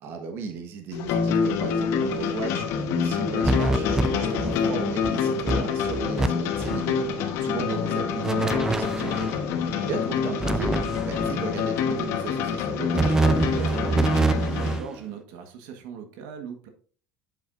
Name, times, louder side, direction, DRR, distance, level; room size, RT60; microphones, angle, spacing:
voice 1, 0.0-7.0 7.4-9.4 9.9-14.2, right 4 dB, 55° right, 5 dB, 1.4 m, -35 dB
sound 1, 0.9-14.8, left 6 dB, 65° left, 1.2 m, -27 dB
sound 2, 3.4-4.7 5.0-5.1 5.5-6.3 6.6-6.9 8.2-9.4 10.4-11.4 12.9-14.9, right 2 dB, 10° right, 0.5 m, -25 dB
voice 2, 14.5-16.7, right 6 dB, 75° right, 5 dB, 1.5 m, -40 dB
8.3 x 7.2 x 2.6 m, 0.42 s
cardioid pair, 125°, 5 cm